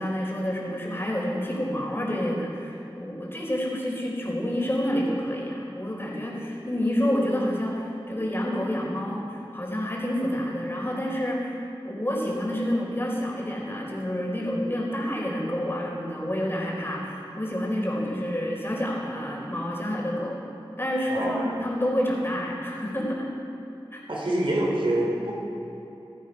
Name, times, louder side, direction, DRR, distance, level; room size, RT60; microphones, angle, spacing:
voice 1, 0.0-20.4 20.8-23.3 23.9-24.0, equal, 25° left, -3 dB, 4.3 m, -28 dB
voice 2, 21.1-21.5 24.1-25.3, right 1 dB, 65° right, -3 dB, 4.1 m, -26 dB
17.5 x 13.0 x 5.6 m, 2.9 s
wide cardioid pair, 50°, 9 cm